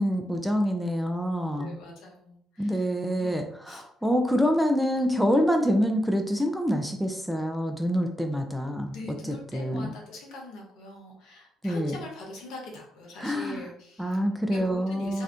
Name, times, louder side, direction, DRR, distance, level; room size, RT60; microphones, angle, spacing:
voice 1, 0.0-1.7 2.6-8.9 9.5-9.9 11.6-12.0 13.2-13.6 14.0-15.2, equal, ahead, 4 dB, 0.5 m, -26 dB
voice 2, 1.5-2.9 3.2-3.3 3.7-3.9 8.9-14.2 14.5-15.2, left 1 dB, 70° left, 0 dB, 0.9 m, -42 dB
2.7 x 2.4 x 3.4 m, 0.65 s
hypercardioid pair, 60°, 0 cm